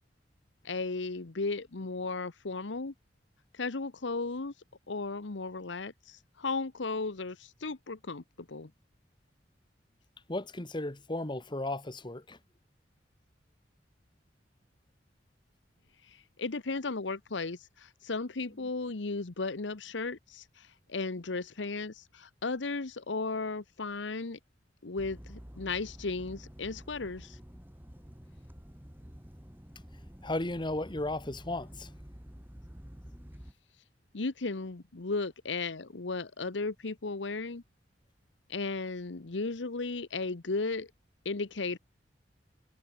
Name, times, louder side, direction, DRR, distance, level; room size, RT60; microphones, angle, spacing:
voice 1, 0.6-2.9 3.5-4.5 4.9-8.7 16.4-24.4 24.8-27.4 34.1-37.6 38.5-40.9 41.2-41.8, left 3 dB, 90° left, 1.1 m, -35 dB
voice 2, 10.3-12.4 30.2-31.9, left 2 dB, 25° left, 1.5 m, -35 dB
sound 1, 25.0-33.5, equal, 10° right, 2.2 m, -49 dB
head